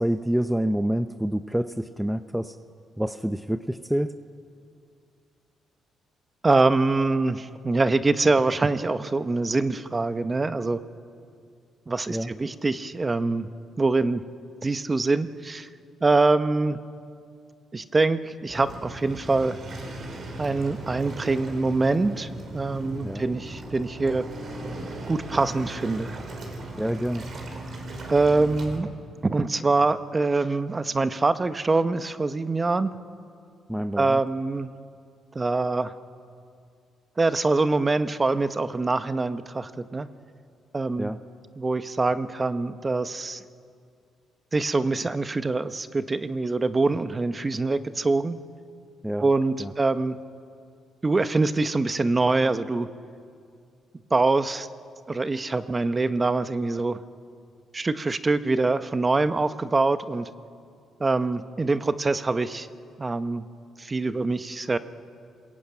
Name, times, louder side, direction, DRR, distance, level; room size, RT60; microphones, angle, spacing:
voice 1, 0.0-2.6 3.0-4.1 12.1-12.3 23.0-23.3 26.8-27.3 33.7-34.2 41.0-41.2 49.0-49.2 49.6-49.7, right 1 dB, 5° right, 9 dB, 0.7 m, -27 dB
voice 2, 6.4-10.8 11.9-13.5 13.8-14.2 14.6-15.7 16.0-16.8 17.7-19.6 20.4-24.2 25.1-26.2 28.1-28.9 29.2-32.9 34.0-34.7 35.3-35.9 37.2-40.1 40.7-41.1 41.6-43.4 44.5-48.4 49.2-50.1 51.0-52.9 54.1-54.7 55.1-57.0 57.7-60.3 61.0-62.7 63.0-63.4 63.8-64.8, right 3 dB, 25° right, 11 dB, 1.0 m, -24 dB
Waves surf, 18.5-28.8, right 1 dB, 55° right, 4.8 m, -37 dB
28.0 x 21.5 x 9.0 m, 2.4 s
cardioid pair, 90°, 0 cm